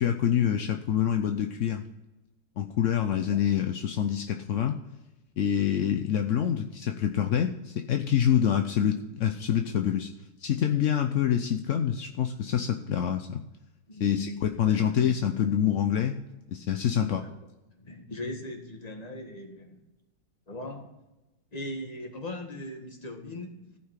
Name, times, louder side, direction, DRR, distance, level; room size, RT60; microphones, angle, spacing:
voice 1, 0.0-1.8 2.6-4.8 5.4-10.1 10.4-13.4 14.0-16.2 16.5-17.2, left 9 dB, 70° left, 5 dB, 0.7 m, -26 dB
voice 2, 13.9-15.1 16.8-17.3 17.7-19.8 20.5-20.9 21.5-23.7, left 1 dB, 25° left, 3 dB, 1.5 m, -40 dB
14.5 x 5.8 x 5.8 m, 1.0 s
omnidirectional pair, 2.0 m